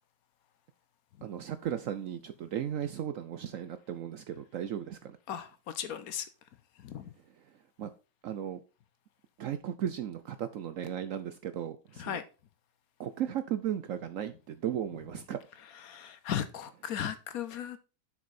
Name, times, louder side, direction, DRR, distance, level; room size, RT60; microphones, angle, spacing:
voice 1, 1.2-5.2 7.8-7.9 8.2-8.6 9.4-12.2 13.0-15.4, right 10 dB, 70° right, 0.8 m, -36 dB
voice 2, 5.3-6.3 6.8-7.1 12.0-12.2 15.9-17.8, left 9 dB, 65° left, 1.1 m, -36 dB
7.1 x 6.0 x 4.2 m
omnidirectional pair, 1.8 m